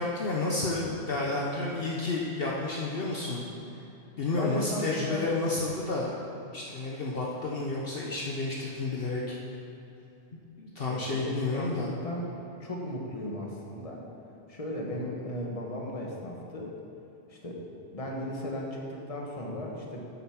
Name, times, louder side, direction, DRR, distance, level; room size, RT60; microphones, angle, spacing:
voice 1, 0.0-3.4 4.2-6.1 6.5-9.4 10.3-11.9, left 3 dB, 55° left, -3 dB, 1.1 m, -31 dB
voice 2, 4.4-5.3 10.9-14.0 14.5-16.7 17.3-17.6 17.9-20.0, left 1 dB, 30° left, -1 dB, 1.4 m, -36 dB
8.1 x 8.1 x 5.9 m, 2.9 s
omnidirectional pair, 1.2 m